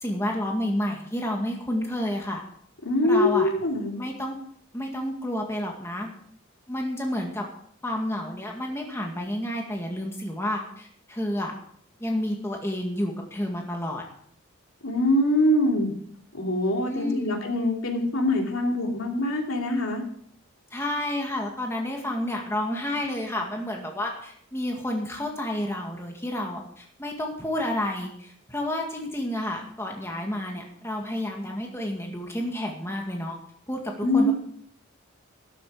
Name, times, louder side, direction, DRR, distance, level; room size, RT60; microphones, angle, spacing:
voice 1, 0.0-2.4 3.0-3.5 3.9-4.4 4.7-6.1 6.7-7.5 7.8-11.5 12.0-14.0 16.8-17.4 20.7-33.4 33.7-34.3, left 1 dB, 10° left, 1 dB, 1.9 m, -30 dB
voice 2, 2.8-4.0 14.8-15.9 16.3-20.0 34.0-34.3, left 1 dB, 80° left, 1 dB, 2.9 m, -23 dB
12.5 x 12.0 x 4.9 m, 0.64 s
head